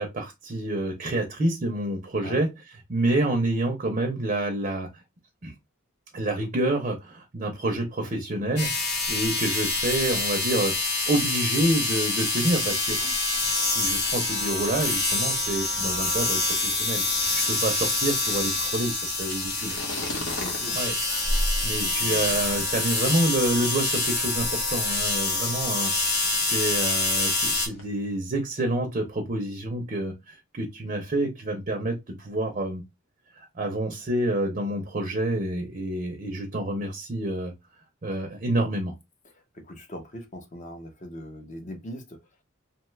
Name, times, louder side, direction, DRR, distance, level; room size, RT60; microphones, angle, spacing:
voice 1, 0.0-2.5 2.9-4.9 5.4-5.5 6.1-10.7 11.1-13.1 13.5-19.8 20.7-20.9 21.6-25.9 26.3-32.8 33.4-37.5 38.0-38.9, right 1 dB, 35° right, 0.5 m, -28 dB
sound 1, 8.6-27.7, left 3 dB, 50° left, 1.0 m, -26 dB
sound 2, 13.8-27.9, left 1 dB, 80° left, 0.9 m, -43 dB
voice 2, 20.4-20.8 21.8-22.4 39.2-42.2, equal, 35° left, 0.6 m, -40 dB
2.7 x 2.2 x 3.1 m
head